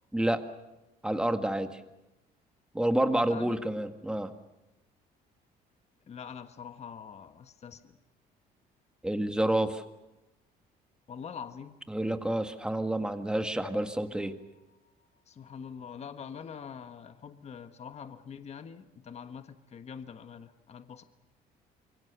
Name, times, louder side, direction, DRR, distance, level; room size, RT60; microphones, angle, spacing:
voice 1, 0.1-0.4 1.0-1.8 2.7-4.3 9.0-9.8 11.9-14.3, right 1 dB, 5° right, 7 dB, 1.8 m, -29 dB
voice 2, 3.0-3.6 6.1-8.0 11.1-11.8 15.3-21.0, left 7 dB, 40° left, 9 dB, 1.4 m, -44 dB
sound 1, 13.7-17.3 17.9-18.0 18.2-18.3, left 5 dB, 55° left, 2.7 m, -56 dB
27.0 x 23.5 x 6.7 m, 0.99 s
cardioid pair, 110°, 17 cm